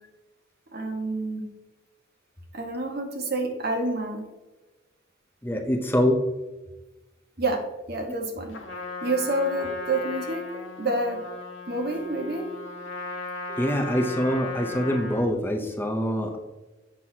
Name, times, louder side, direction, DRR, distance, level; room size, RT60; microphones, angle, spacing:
voice 1, 0.7-1.4 2.5-4.2 7.4-7.6 7.9-8.6 9.0-10.5 10.8-11.2 11.7-12.5, right 2 dB, 55° right, 2 dB, 1.3 m, -28 dB
voice 2, 5.4-6.2 13.5-16.4, equal, 10° left, 3 dB, 0.6 m, -25 dB
Trumpet, 8.5-15.3, left 2 dB, 85° left, 1.1 m, -37 dB
7.4 x 6.0 x 2.8 m, 1.1 s
head